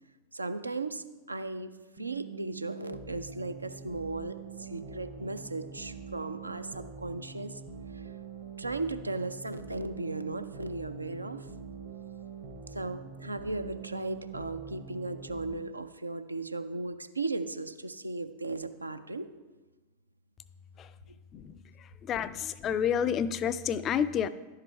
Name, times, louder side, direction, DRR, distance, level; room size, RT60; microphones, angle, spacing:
voice 1, 0.3-1.7 2.0-7.6 7.9-8.1 8.6-11.5 12.7-19.3, right 2 dB, 80° right, 10 dB, 0.4 m, -36 dB
sound 1, 2.0-15.5, right 5 dB, 55° right, 1.1 m, -45 dB
voice 2, 21.3-24.3, left 8 dB, 30° left, 14 dB, 0.4 m, -30 dB
11.0 x 4.9 x 4.5 m, 1.2 s
figure-of-eight pair, 90°, 0 cm